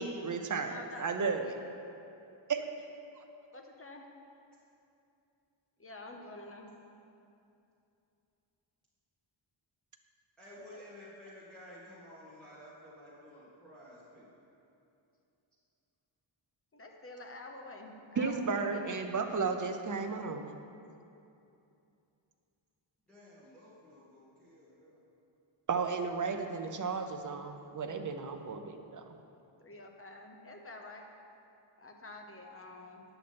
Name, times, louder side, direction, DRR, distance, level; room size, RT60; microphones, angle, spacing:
voice 1, 0.0-1.6 2.5-2.7 3.2-3.3 18.2-20.5 25.7-29.2, right 4 dB, 40° right, 6 dB, 0.7 m, -34 dB
voice 2, 0.7-1.1 1.4-1.6 3.5-4.0 5.8-6.7 10.7-10.8 16.7-18.8 29.6-31.1 31.8-33.0, left 2 dB, 25° left, 2 dB, 1.0 m, -48 dB
voice 3, 10.4-14.3 23.1-25.0, left 1 dB, ahead, -11 dB, 2.1 m, -53 dB
9.7 x 7.9 x 4.3 m, 2.7 s
wide cardioid pair, 115°, 48 cm